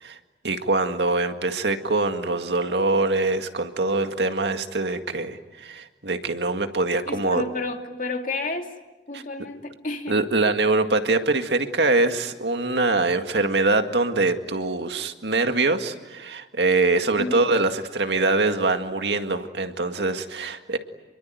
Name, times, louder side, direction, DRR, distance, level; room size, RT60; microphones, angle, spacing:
voice 1, 0.4-7.4 9.1-9.2 10.1-20.8, right 3 dB, 80° right, 7 dB, 2.0 m, -23 dB
voice 2, 7.1-8.7 9.1-10.2 17.2-17.4, left 2 dB, 50° left, 4 dB, 2.6 m, -30 dB
27.5 x 23.0 x 9.4 m, 1.1 s
head